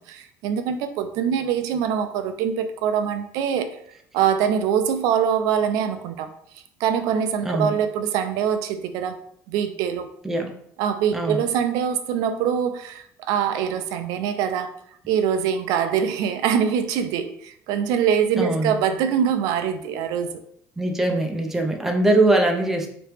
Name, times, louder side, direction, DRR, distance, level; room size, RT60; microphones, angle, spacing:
voice 1, 0.1-3.7 4.1-6.3 6.8-9.2 9.5-10.1 10.8-14.7 15.1-20.4, right 8 dB, 90° right, 8 dB, 0.4 m, -23 dB
voice 2, 7.4-7.8 10.2-10.5 11.1-11.5 18.4-18.8 20.8-22.9, right 2 dB, 5° right, 3 dB, 0.4 m, -22 dB
3.0 x 2.9 x 3.2 m, 0.68 s
cardioid pair, 180°, 6 cm